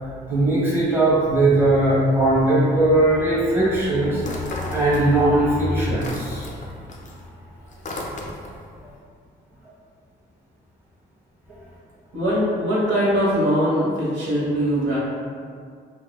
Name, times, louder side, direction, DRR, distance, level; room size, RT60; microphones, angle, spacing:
voice 1, 0.3-6.5, right 2 dB, 10° right, -8 dB, 0.9 m, -19 dB
sound 1, 4.2-5.4 5.7-8.7, left 2 dB, 40° left, 0.4 m, -35 dB
voice 2, 12.1-15.0, equal, 70° right, -9 dB, 1.1 m, -21 dB
2.8 x 2.0 x 2.2 m, 2.1 s
cardioid pair, 90°, 20 cm